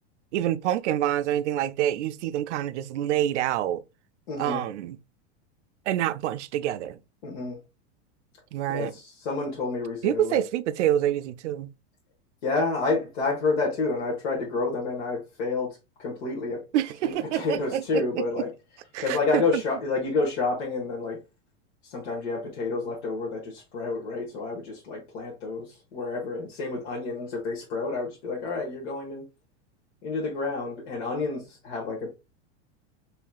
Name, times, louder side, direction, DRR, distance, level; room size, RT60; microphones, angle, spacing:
voice 1, 0.3-3.8 4.4-5.0 5.9-7.0 8.5-8.9 10.0-11.7 16.7-18.2 18.9-19.6, right 12 dB, 85° right, 0.5 m, -27 dB
voice 2, 4.3-4.6 7.2-7.6 8.7-10.4 12.4-16.6 17.0-18.5 19.0-21.2 21.8-29.2 30.0-32.1, left 3 dB, 65° left, 1.5 m, -29 dB
4.7 x 3.2 x 2.3 m
supercardioid pair, 180°, 34 cm